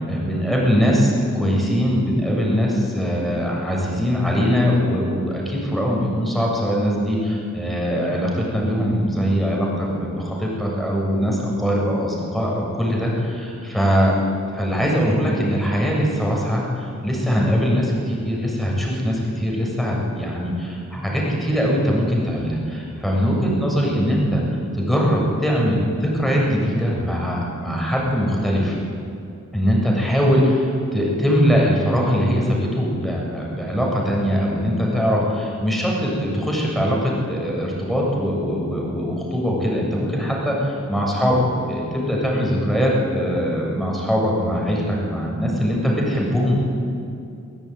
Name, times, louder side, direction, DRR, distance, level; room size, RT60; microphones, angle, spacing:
voice 1, 0.0-14.2 14.5-28.8 29.5-46.5, equal, ahead, -3 dB, 7.5 m, -21 dB
23.0 x 14.5 x 9.5 m, 2.6 s
wide cardioid pair, 60°, 30 cm